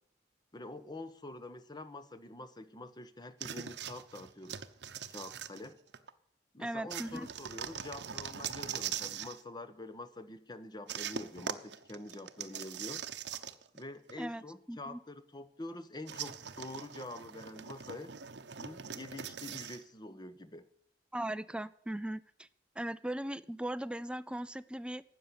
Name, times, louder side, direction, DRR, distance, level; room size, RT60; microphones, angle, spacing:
voice 1, 0.5-4.6 5.1-5.8 6.5-13.0 13.7-18.1 18.6-20.7, left 2 dB, 25° left, 12 dB, 1.0 m, -46 dB
sound 1, 3.4-6.1 6.9-9.4 10.9-13.8 14.1-14.2 16.1-19.8, right 8 dB, 65° right, 0.9 m, -42 dB
voice 2, 6.6-7.3 14.2-14.4 14.7-15.0 21.1-22.5 22.8-25.0, right 1 dB, 5° right, 15 dB, 0.5 m, -38 dB
12.5 x 8.4 x 9.5 m, 0.66 s
head